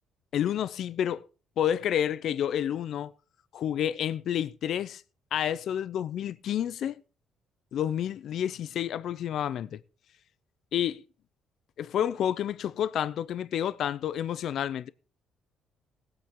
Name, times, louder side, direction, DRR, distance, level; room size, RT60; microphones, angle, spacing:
voice 1, 0.3-1.2 1.6-3.1 3.5-5.0 5.3-7.0 7.7-9.8 10.7-11.0 11.8-14.9, left 10 dB, 55° left, 0.6 m, -29 dB
19.0 x 8.8 x 3.7 m
cardioid pair, 165°, 0 cm